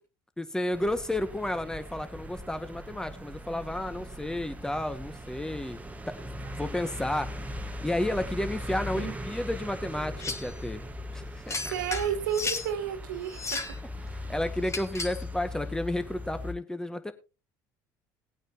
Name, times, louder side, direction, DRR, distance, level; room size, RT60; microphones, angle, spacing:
voice 1, 0.4-5.8 6.1-7.4 7.8-10.8 11.1-11.7 14.1-17.1, left 1 dB, 5° left, 9 dB, 1.8 m, -32 dB
sound 1, 0.7-16.5, left 1 dB, 15° right, 1.6 m, -39 dB
sound 2, 10.2-10.5 11.5-12.7 13.3-13.8 14.7-15.2, left 3 dB, 30° left, 2.7 m, -34 dB
voice 2, 11.7-13.8, right 8 dB, 85° right, 8 dB, 2.1 m, -32 dB
19.5 x 8.9 x 2.9 m, 0.30 s
hypercardioid pair, 70°, 10 cm